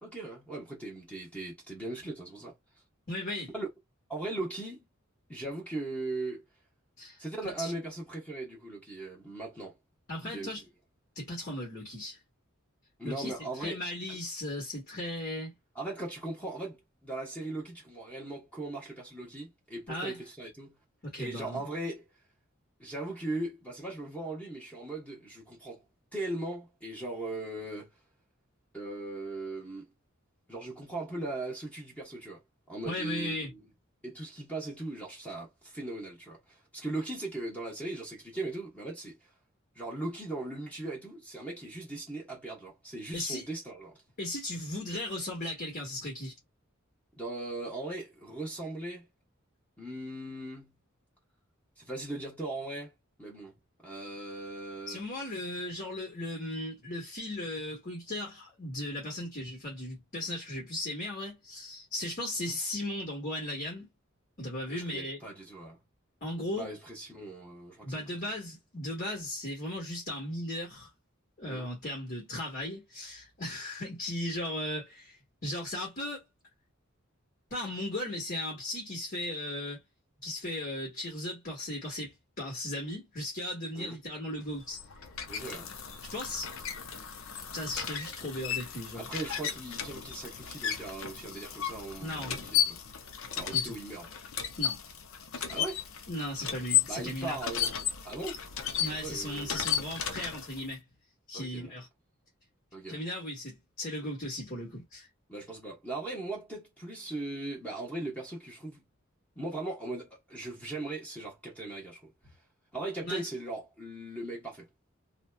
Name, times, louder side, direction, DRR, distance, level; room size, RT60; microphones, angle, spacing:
voice 1, 0.0-2.5 3.5-3.7 4.1-4.8 5.3-6.4 7.2-9.7 10.2-10.5 13.0-13.8 14.1-14.2 15.7-20.8 21.2-22.1 22.8-25.8 26.1-27.9 28.7-29.9 30.5-32.4 32.7-33.6 34.0-39.3 39.7-44.0 47.1-49.1 49.8-50.8 51.8-52.9 53.2-53.5 53.8-55.0 62.5-62.6 64.7-65.8 66.5-68.2 71.5-71.7 83.7-84.0 85.3-85.7 88.9-92.8 93.3-94.1 95.5-95.8 96.9-97.7 98.0-98.4 98.7-99.5 101.3-101.7 102.7-103.0 105.3-108.8 109.4-112.1 112.7-114.7, right 2 dB, 5° left, 0.9 m, -39 dB
voice 2, 3.1-3.5 7.0-7.2 7.6-7.7 10.1-10.6 11.1-12.2 13.0-13.3 13.6-15.5 19.9-20.2 21.1-21.6 32.8-33.5 43.1-43.5 44.2-46.4 54.9-63.9 64.4-65.2 66.2-66.7 67.8-70.9 71.4-75.2 75.4-76.2 77.5-79.8 80.2-84.8 86.0-86.5 87.5-89.1 92.0-92.4 93.5-93.8 94.6-94.8 95.3-95.5 96.1-97.4 98.8-100.8 101.3-101.9 102.9-105.1 113.0-113.2, left 1 dB, 45° left, 1.4 m, -37 dB
sound 1, 84.5-100.7, left 9 dB, 70° left, 0.5 m, -34 dB
2.8 x 2.2 x 2.2 m
head